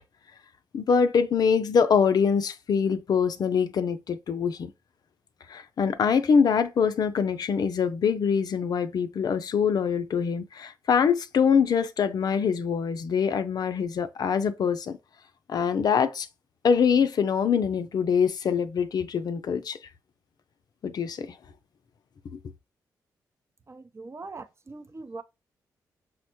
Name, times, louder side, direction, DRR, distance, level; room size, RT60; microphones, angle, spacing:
voice 1, 0.7-4.7 5.5-15.0 15.5-16.3 16.6-19.8 20.8-21.3, left 6 dB, 60° left, 0.4 m, -24 dB
voice 2, 23.7-25.2, right 3 dB, 35° right, 0.6 m, -41 dB
6.0 x 2.1 x 2.9 m
supercardioid pair, 45°, 8 cm